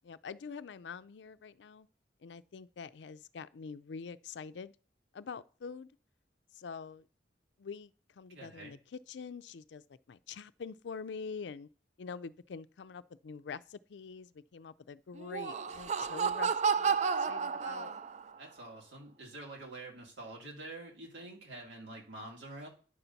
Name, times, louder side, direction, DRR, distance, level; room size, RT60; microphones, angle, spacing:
voice 1, 0.0-1.9 2.2-4.7 5.1-5.9 6.5-7.1 7.6-11.7 12.0-17.9, left 5 dB, 75° left, 0.4 m, -45 dB
voice 2, 8.3-8.8 18.4-22.7, right 2 dB, 90° right, 2.5 m, -47 dB
Laughter, 15.2-18.3, right 6 dB, 40° right, 0.4 m, -31 dB
9.7 x 4.0 x 5.7 m
head